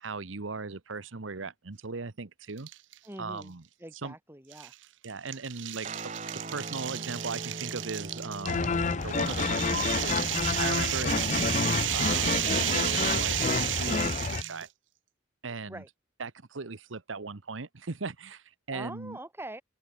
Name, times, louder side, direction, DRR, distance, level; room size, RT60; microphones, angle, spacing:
voice 1, 0.0-2.7 3.2-3.6 4.0-4.1 5.0-5.9 6.5-8.8 9.0-10.2 10.6-11.5 11.9-14.7 15.4-15.8 16.2-19.2, right 4 dB, 85° right, 1.1 m, -38 dB
sound 1, 2.6-3.0 3.4-3.5 4.5-14.7, right 14 dB, 70° right, 0.6 m, -32 dB
voice 2, 3.0-3.5 3.8-4.7 15.7-15.9 18.7-19.6, right 1 dB, 10° right, 5.0 m, -43 dB
Guitar, 5.8-14.7, right 1 dB, 40° right, 6.5 m, -43 dB
sound 2, 8.4-14.4, left 4 dB, 40° left, 0.6 m, -29 dB
open air
head